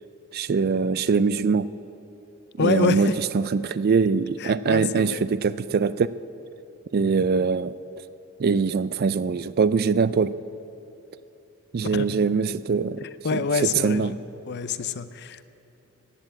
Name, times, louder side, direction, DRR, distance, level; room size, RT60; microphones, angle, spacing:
voice 1, 0.3-1.7 2.6-6.1 6.9-7.7 8.4-10.3 11.7-13.1 13.3-14.1, right 5 dB, 45° right, 16 dB, 0.4 m, -23 dB
voice 2, 2.6-3.2 4.4-5.2 11.8-12.1 13.2-14.2 14.5-15.4, left 5 dB, 50° left, 14 dB, 0.6 m, -26 dB
15.0 x 9.8 x 8.8 m, 2.8 s
head